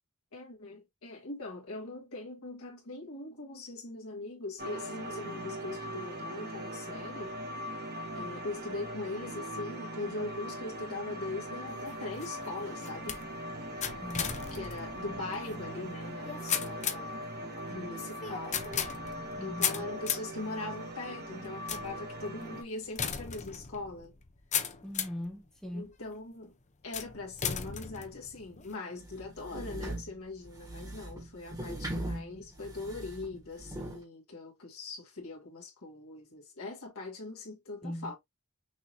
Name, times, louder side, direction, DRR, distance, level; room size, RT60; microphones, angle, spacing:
voice 1, 0.3-7.3 8.2-13.2 14.5-18.6 19.4-24.1 25.7-26.5 26.8-38.1, left 2 dB, 65° left, 1.8 m, -41 dB
sound 1, 4.6-22.6, right 1 dB, 45° right, 1.3 m, -40 dB
sound 2, 11.7-25.3 25.9-26.3 26.9-28.7, left 8 dB, 30° left, 0.7 m, -37 dB
voice 2, 14.0-14.3 19.4-19.9 24.8-25.8 37.8-38.1, left 1 dB, ahead, 0.8 m, -40 dB
sound 3, 29.0-34.0, right 1 dB, 15° right, 1.4 m, -40 dB
6.1 x 2.8 x 2.9 m
head